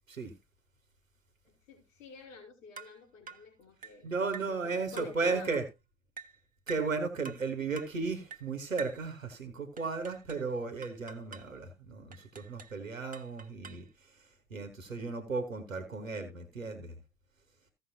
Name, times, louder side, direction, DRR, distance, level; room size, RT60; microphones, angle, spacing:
voice 1, 1.5-5.6, left 5 dB, 80° left, 3.5 m, -49 dB
sound 1, 2.8-3.0 3.3-3.5 3.8-4.0 4.3-4.6 5.0-5.2 5.5-5.7 6.2-6.4 6.7-6.9 7.2-7.5 7.8-8.0 8.3-8.5 8.8-9.0 9.8-10.5 10.8-11.5 12.1-12.8 13.1-13.9, right 5 dB, 20° right, 1.2 m, -47 dB
voice 2, 3.8-5.6 6.7-17.0, right 4 dB, 90° right, 1.4 m, -35 dB
15.5 x 6.3 x 2.8 m
figure-of-eight pair, 55°, 39 cm